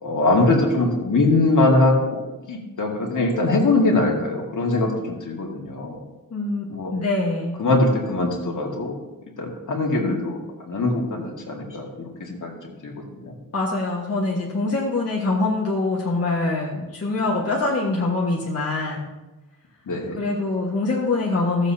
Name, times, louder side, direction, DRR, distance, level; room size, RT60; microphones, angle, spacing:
voice 1, 0.0-2.2 2.5-4.9 5.2-6.0 6.7-6.9 7.6-9.0 9.4-12.6 12.8-12.9 13.2-13.3 19.9-20.2, left 2 dB, 65° left, -1 dB, 2.2 m, -22 dB
voice 2, 6.3-7.6 13.5-19.1 20.2-21.7, left 2 dB, 45° left, -4 dB, 1.6 m, -24 dB
16.5 x 7.3 x 2.8 m, 1.1 s
wide cardioid pair, 100°, 33 cm